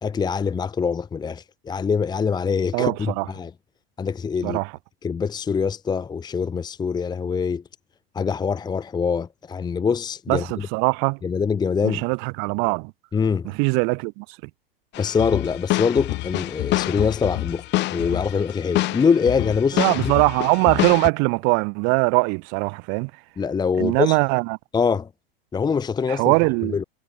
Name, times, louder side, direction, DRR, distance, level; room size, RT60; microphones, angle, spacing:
voice 1, 0.0-3.5 4.0-4.6 5.0-7.6 8.1-10.7 11.2-12.0 13.1-13.5 15.0-17.6 17.9-20.1 23.4-24.2 24.7-25.1 25.5-26.3 26.6-26.8, left 6 dB, 15° left, 1.0 m, -24 dB
voice 2, 2.7-3.3 4.4-4.7 10.3-11.2 11.8-12.9 13.6-14.2 19.7-23.1 23.8-24.6 26.1-26.8, right 38 dB, 40° right, 0.7 m, -21 dB
sound 1, 14.9-21.1, left 18 dB, 35° left, 1.5 m, -26 dB
figure-of-eight pair, 95°, 30 cm